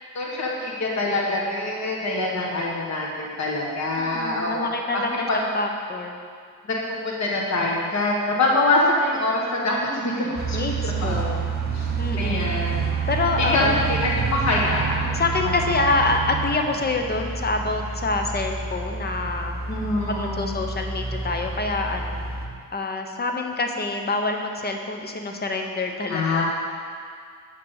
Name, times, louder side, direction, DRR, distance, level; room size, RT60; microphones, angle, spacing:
voice 1, 0.2-5.0 5.3-5.4 6.7-10.6 10.8-11.3 11.7-11.9 12.2-13.1 13.4-15.9 19.7-20.7 26.1-26.5, left 2 dB, 45° left, -2 dB, 1.7 m, -25 dB
voice 2, 4.0-6.2 10.5-11.5 12.0-12.5 13.1-13.8 15.0-19.5 20.1-22.2 22.7-26.5, left 3 dB, 25° left, 3 dB, 0.8 m, -26 dB
sound 1, 10.4-22.5, right 5 dB, 25° right, 0.8 m, -28 dB
7.0 x 6.6 x 7.2 m, 2.1 s
wide cardioid pair, 160°, 37 cm